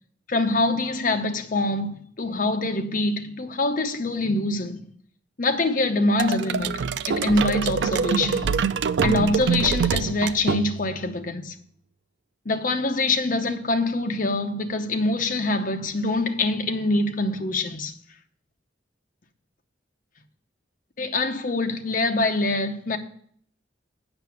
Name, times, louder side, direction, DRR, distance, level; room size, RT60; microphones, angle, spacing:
voice 1, 0.3-4.8 5.4-8.5 9.0-11.6 12.5-17.9 21.0-23.0, left 2 dB, 45° left, 0.8 m, -24 dB
sound 1, 6.2-11.0, right 6 dB, 65° right, 0.3 m, -25 dB
7.9 x 5.9 x 7.0 m
head